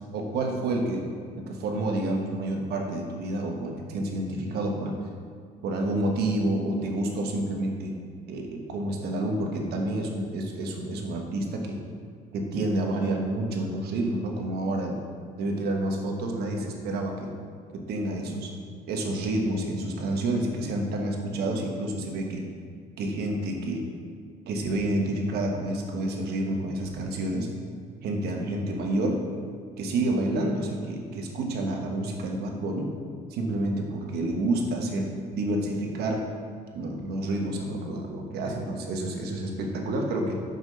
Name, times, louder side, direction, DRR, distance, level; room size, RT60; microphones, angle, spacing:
voice 1, 0.1-1.1 1.4-5.0 5.6-7.9 8.3-11.8 12.3-15.0 15.4-17.3 17.7-18.5 18.9-22.4 23.0-23.9 24.5-27.5 28.0-29.2 29.8-32.9 33.3-36.3 36.7-40.3, right 1 dB, 75° right, 2 dB, 1.2 m, -29 dB
5.9 x 5.9 x 5.3 m, 2.1 s
cardioid pair, 110°, 17 cm